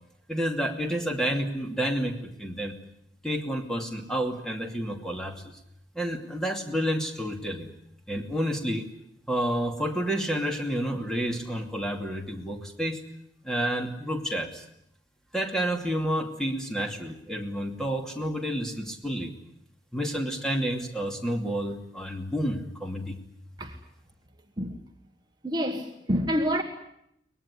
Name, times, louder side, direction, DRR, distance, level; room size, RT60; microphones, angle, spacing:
voice 1, 0.3-2.8 3.2-5.5 5.9-7.7 8.1-8.9 9.3-13.0 13.4-14.6 15.3-19.3 19.9-23.2, equal, 5° left, 2.6 m, -30 dB
voice 2, 25.4-26.6, equal, 25° right, 1.5 m, -27 dB
23.5 x 19.5 x 9.8 m
head